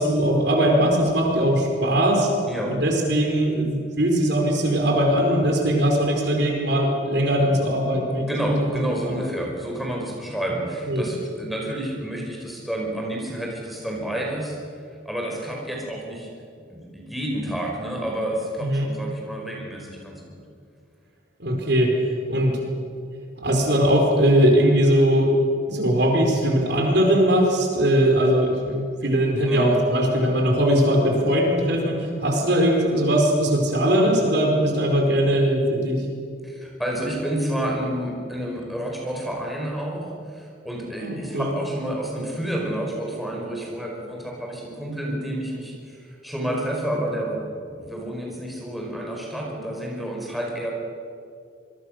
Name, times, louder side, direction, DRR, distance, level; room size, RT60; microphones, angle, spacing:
voice 1, 0.0-2.3 2.7-8.3 9.0-9.1 10.9-11.1 18.6-18.9 21.4-21.9 22.3-22.6 23.4-25.3 25.7-36.0 41.0-41.5, equal, 55° right, 1 dB, 4.8 m, -20 dB
voice 2, 2.5-2.8 8.1-14.6 15.0-16.3 16.7-20.4 29.5-29.7 36.4-50.7, right 1 dB, ahead, -2 dB, 5.0 m, -29 dB
27.0 x 23.0 x 6.6 m, 2.3 s
head